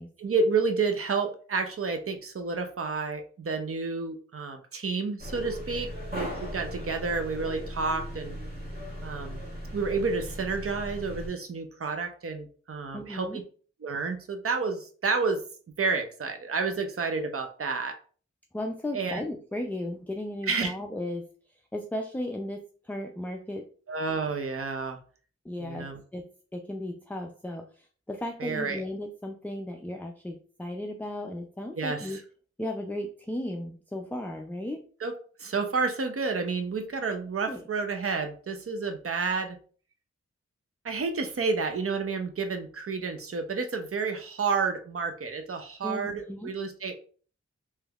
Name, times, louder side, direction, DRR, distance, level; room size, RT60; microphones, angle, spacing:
voice 1, 0.2-8.4 9.0-9.4 9.7-13.4 13.8-15.4 15.8-18.0 18.9-19.2 20.5-20.8 23.9-25.0 25.6-26.0 28.4-28.8 31.8-32.2 35.0-35.1 35.4-39.6 40.8-47.0, right 4 dB, 50° right, 6 dB, 0.6 m, -30 dB
sound 1, 5.2-11.3, equal, 35° right, 1.5 m, -38 dB
voice 2, 12.9-13.4 18.5-21.3 21.7-23.6 25.4-25.9 26.1-32.2 32.6-34.9 37.5-37.6 45.8-46.5, left 1 dB, 5° left, 2 dB, 0.4 m, -35 dB
3.2 x 3.0 x 2.3 m, 0.42 s
cardioid pair, 45°, 29 cm